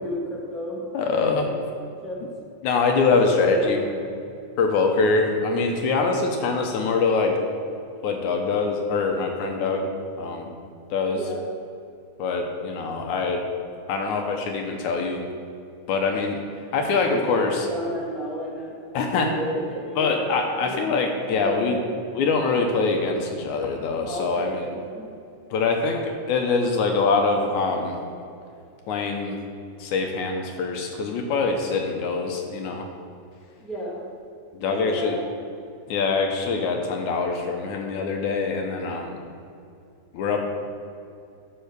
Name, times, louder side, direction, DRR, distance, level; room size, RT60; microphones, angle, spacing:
voice 1, 0.0-0.8 1.4-1.5 2.0-2.2 3.1-4.1 11.1-11.4 16.8-21.9 24.0-25.1 33.6-34.0 34.6-35.2, equal, ahead, -5 dB, 1.6 m, -32 dB
voice 2, 0.9-1.5 2.6-3.8 4.6-7.3 8.0-10.5 10.9-11.2 12.2-13.4 13.9-15.2 15.9-16.4 16.7-17.7 18.9-19.3 20.0-21.8 22.2-24.6 25.5-28.0 28.9-29.4 29.8-32.9 34.5-35.1 35.9-39.2 40.1-40.4, left 4 dB, 75° left, 3 dB, 2.1 m, -24 dB
10.5 x 5.5 x 6.7 m, 2.5 s
omnidirectional pair, 3.6 m